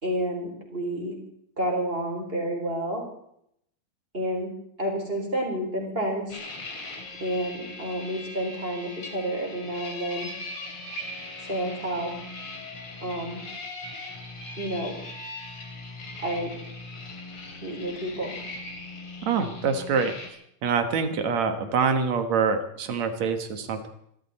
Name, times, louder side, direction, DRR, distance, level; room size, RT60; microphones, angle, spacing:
voice 1, 0.0-1.2 1.6-3.0 4.1-4.5 4.8-6.4 7.2-10.3 11.4-12.1 13.0-13.4 14.6-14.9 16.2-16.5 17.6-18.3, right 1 dB, 15° right, 1 dB, 3.8 m, -30 dB
sound 1, 6.3-20.3, left 2 dB, 40° left, 3.2 m, -39 dB
voice 2, 19.2-20.4 20.6-23.9, right 5 dB, 60° right, 8 dB, 2.2 m, -25 dB
26.0 x 13.0 x 4.2 m, 0.72 s
omnidirectional pair, 4.3 m